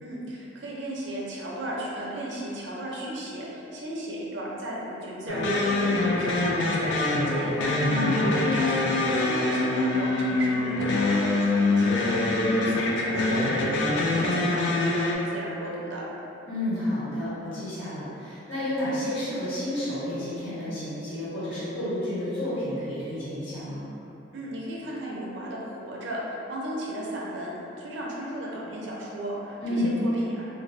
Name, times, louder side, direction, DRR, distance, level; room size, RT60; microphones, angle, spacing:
voice 1, 0.0-16.0 24.3-30.5, right 1 dB, 70° right, -4 dB, 0.5 m, -35 dB
sound 1, 5.3-15.2, left 2 dB, 70° left, 0.3 m, -24 dB
voice 2, 7.9-8.2 16.5-23.8 29.6-29.9, left 1 dB, 85° left, -13 dB, 1.4 m, -30 dB
2.5 x 2.1 x 3.1 m, 3.0 s
head